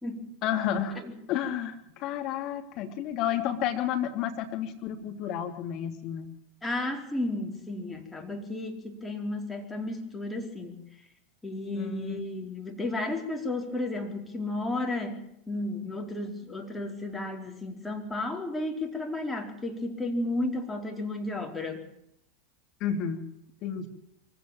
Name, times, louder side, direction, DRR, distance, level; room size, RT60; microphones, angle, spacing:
voice 1, 0.4-1.0 1.3-6.3 11.7-12.2 22.8-23.3 23.6-23.9, left 9 dB, 45° left, 5 dB, 3.4 m, -31 dB
voice 2, 6.6-10.8 11.4-21.8, left 2 dB, 10° left, 2 dB, 4.4 m, -33 dB
24.0 x 16.0 x 7.5 m, 0.75 s
figure-of-eight pair, 85°, 0 cm